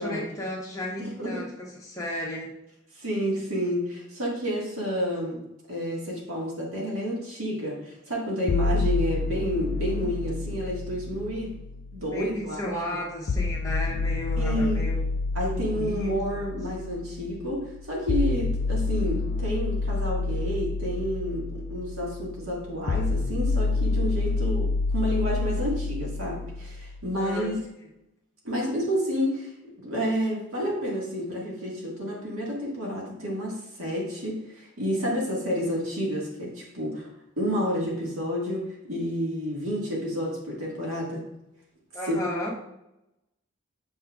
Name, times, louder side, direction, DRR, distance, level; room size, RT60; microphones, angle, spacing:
voice 1, 0.0-1.5 1.8-2.5 12.1-15.0 15.5-16.1 27.2-27.5 41.9-42.5, left 1 dB, 15° left, -3 dB, 1.0 m, -33 dB
voice 2, 1.0-1.5 3.0-5.4 5.7-11.6 11.9-12.8 14.4-14.8 15.4-27.6 28.4-37.1 37.4-41.3 42.1-42.2, equal, 85° right, -3 dB, 1.8 m, -30 dB
sound 1, 8.5-12.5 13.3-27.3, left 3 dB, 45° left, 0.3 m, -29 dB
6.9 x 5.6 x 2.4 m, 0.87 s
head